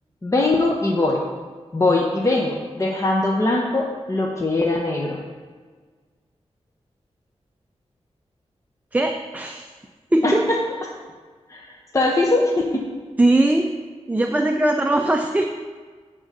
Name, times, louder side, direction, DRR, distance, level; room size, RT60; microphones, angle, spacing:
voice 1, 0.2-1.2 1.7-5.2 10.2-10.6 11.5-12.8, left 2 dB, 25° left, -1 dB, 0.8 m, -21 dB
voice 2, 8.9-9.7 10.1-10.5 13.2-13.7 14.1-15.5, right 1 dB, 15° right, 4 dB, 0.5 m, -19 dB
7.8 x 3.7 x 6.6 m, 1.5 s
wide cardioid pair, 80°, 12 cm